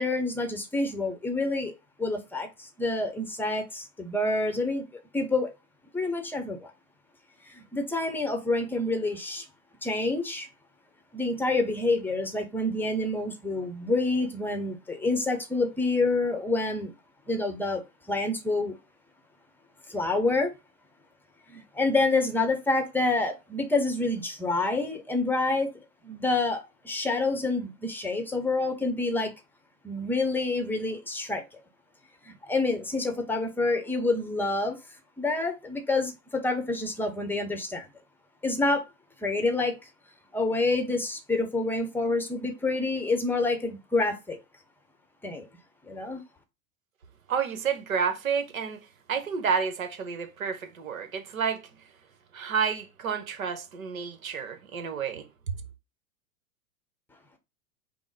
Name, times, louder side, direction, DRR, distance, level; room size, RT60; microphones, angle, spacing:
voice 1, 0.0-1.7 2.0-4.8 5.1-5.5 5.9-6.7 7.5-9.4 9.8-10.5 11.1-16.9 17.3-17.8 18.1-18.7 19.9-20.5 21.5-29.3 29.8-31.4 32.2-34.8 35.2-37.9 38.4-38.8 39.2-39.7 40.3-44.4 45.2-45.5 45.9-46.2, left 2 dB, 5° left, 0.8 m, -27 dB
voice 2, 47.3-48.8 49.1-51.7 52.3-55.3, right 6 dB, 70° right, 1.1 m, -30 dB
5.3 x 2.1 x 4.7 m
figure-of-eight pair, 95°, 43 cm